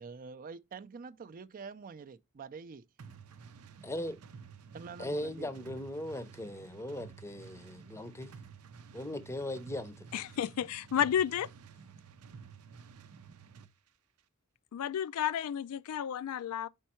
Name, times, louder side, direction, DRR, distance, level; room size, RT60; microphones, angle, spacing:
voice 1, 0.0-2.8 4.7-5.5, right 5 dB, 40° right, 0.4 m, -46 dB
sound 1, 3.0-13.7, right 6 dB, 90° right, 0.6 m, -52 dB
voice 2, 3.8-4.2 5.0-8.3 8.9-10.1, left 1 dB, 10° left, 0.6 m, -39 dB
voice 3, 10.1-11.5 14.7-16.7, left 9 dB, 80° left, 0.3 m, -32 dB
5.3 x 4.6 x 4.3 m
head